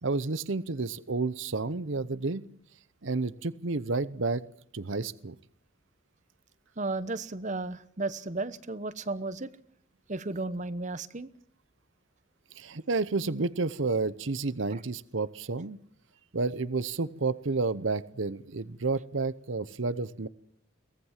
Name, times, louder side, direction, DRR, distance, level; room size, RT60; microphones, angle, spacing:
voice 1, 0.0-2.4 3.0-4.4 4.7-5.4 12.6-15.8 16.3-20.3, right 3 dB, 65° right, 16 dB, 0.8 m, -30 dB
voice 2, 6.8-9.5 10.1-11.3 14.7-14.8, right 2 dB, 35° right, 15 dB, 1.0 m, -34 dB
23.5 x 18.0 x 7.4 m, 0.64 s
head